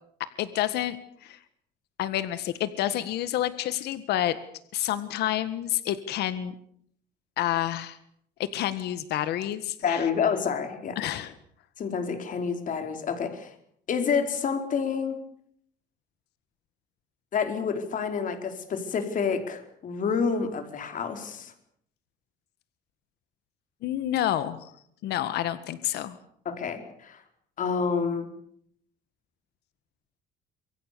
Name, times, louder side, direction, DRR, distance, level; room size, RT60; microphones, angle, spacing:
voice 1, 0.2-1.4 2.0-4.4 4.7-6.6 7.4-8.0 8.4-10.0 11.0-11.3 23.8-24.7 25.0-26.2, left 12 dB, 80° left, 13 dB, 1.7 m, -29 dB
voice 2, 9.8-11.1 11.8-13.5 13.9-15.2 17.3-21.5 26.4-27.2 27.6-28.3, left 6 dB, 50° left, 7 dB, 4.6 m, -28 dB
27.0 x 23.5 x 7.0 m, 0.68 s
cardioid pair, 110°, 17 cm